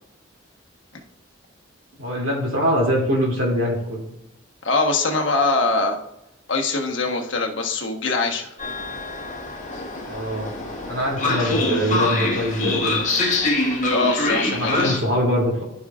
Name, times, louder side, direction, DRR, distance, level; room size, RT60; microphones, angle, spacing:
voice 1, 2.0-4.1 10.1-10.5 10.9-13.0 14.5-15.6, equal, 85° right, -2 dB, 2.6 m, -23 dB
voice 2, 4.6-6.0 6.5-8.5 13.9-15.0, left 3 dB, 70° left, 2 dB, 1.2 m, -22 dB
Train, 8.6-15.0, left 2 dB, 40° left, 1.7 m, -24 dB
14.0 x 5.5 x 2.4 m, 0.85 s
head